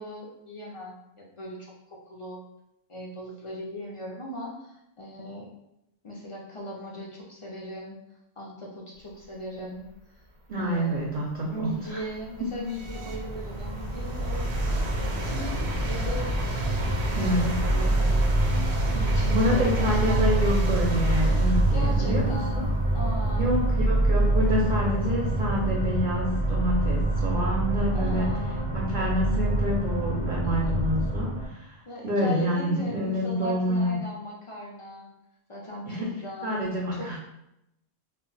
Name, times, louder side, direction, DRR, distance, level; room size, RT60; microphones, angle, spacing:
voice 1, 0.0-2.4 2.9-5.5 6.0-8.0 8.4-9.9 10.6-11.0 11.5-16.3 17.1-18.3 18.8-20.5 21.7-22.6 22.9-23.6 27.9-28.6 30.4-30.8 31.9-35.1 35.5-36.5 37.0-37.1, equal, 55° left, -3 dB, 0.3 m, -38 dB
sound 1, 10.3-10.4 11.0-25.7, equal, 85° right, 0.9 m, -34 dB
voice 2, 10.5-12.0 17.2-17.6 19.3-22.7 23.3-28.4 28.7-34.0 35.9-36.1 36.4-37.2, equal, 60° right, -2 dB, 0.6 m, -27 dB
sound 2, 12.8-31.5, right 2 dB, 10° right, 0.5 m, -26 dB
2.2 x 2.1 x 3.8 m, 0.85 s
omnidirectional pair, 1.1 m